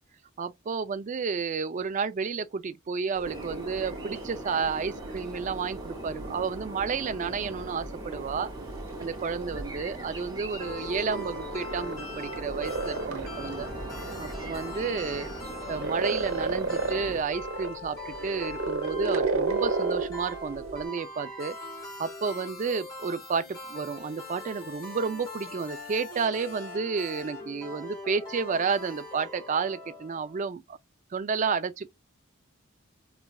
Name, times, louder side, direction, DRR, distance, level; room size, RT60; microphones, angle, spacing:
voice 1, 0.4-8.5 9.0-13.7 14.2-15.3 15.7-21.6 22.0-30.8 31.1-31.9, right 5 dB, 35° right, 0.3 m, -31 dB
sound 1, 3.1-20.9, right 3 dB, 70° right, 0.9 m, -35 dB
sound 2, 3.2-17.2, right 1 dB, 20° right, 0.7 m, -41 dB
sound 3, 10.6-30.5, left 2 dB, 15° left, 1.4 m, -41 dB
4.0 x 2.4 x 2.2 m
head